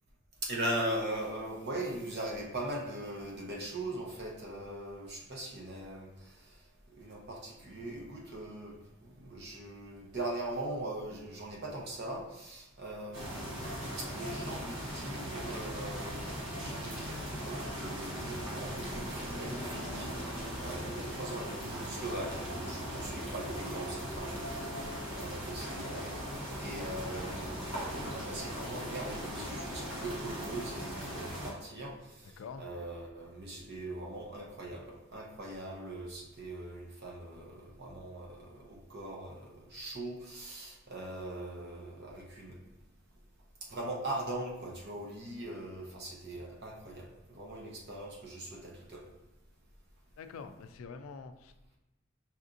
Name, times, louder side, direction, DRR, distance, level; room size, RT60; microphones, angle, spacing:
voice 1, 0.4-6.6 6.9-8.8 9.0-20.1 20.6-24.9 25.1-26.1 26.6-42.6 43.7-49.0, right 1 dB, 55° right, -1 dB, 0.8 m, -40 dB
sound 1, 13.1-31.5, equal, 75° right, 1.1 m, -39 dB
voice 2, 50.2-51.8, left 5 dB, 85° left, 9 dB, 0.3 m, -46 dB
5.6 x 2.6 x 2.5 m, 1.0 s
head